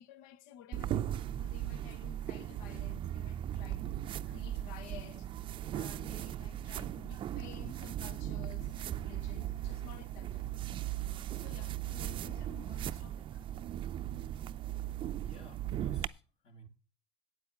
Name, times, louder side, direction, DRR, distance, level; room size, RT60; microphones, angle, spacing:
voice 1, 0.0-5.3 5.7-10.6 11.3-13.4, left 11 dB, 65° left, 0.9 m, -53 dB
sound 1, 0.7-16.1, right 12 dB, 35° right, 0.5 m, -38 dB
voice 2, 15.2-16.7, right 2 dB, 40° left, 2.7 m, -56 dB
9.0 x 8.4 x 7.2 m
supercardioid pair, 120°, 15 cm